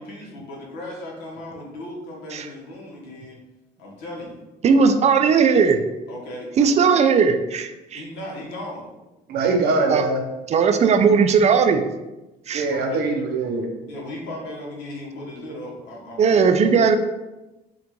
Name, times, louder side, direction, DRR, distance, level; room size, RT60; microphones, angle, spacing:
voice 1, 0.0-3.4 3.8-4.4 6.1-6.8 7.9-8.9 12.7-13.0 13.9-16.6, left 1 dB, 90° left, -2 dB, 1.3 m, -36 dB
voice 2, 4.6-5.8 6.6-8.0 9.9-10.1 10.5-11.8 12.5-12.6 16.2-17.0, right 5 dB, 40° right, 7 dB, 0.4 m, -17 dB
voice 3, 9.3-10.2 12.5-13.7, right 3 dB, 75° right, 2 dB, 0.8 m, -22 dB
5.1 x 2.5 x 3.0 m, 1.0 s
cardioid pair, 110°, 17 cm